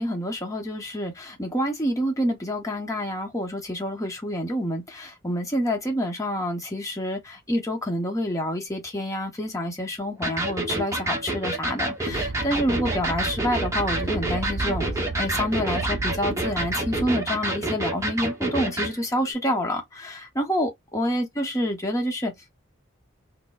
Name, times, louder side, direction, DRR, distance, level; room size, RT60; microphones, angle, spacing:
voice 1, 0.0-14.9 15.2-22.3, equal, 15° left, 0.8 m, -28 dB
Electric guitar, 10.2-19.0, right 1 dB, 15° right, 0.8 m, -28 dB
sound 1, 12.1-17.1, right 3 dB, 60° right, 0.6 m, -33 dB
4.3 x 2.0 x 2.3 m
head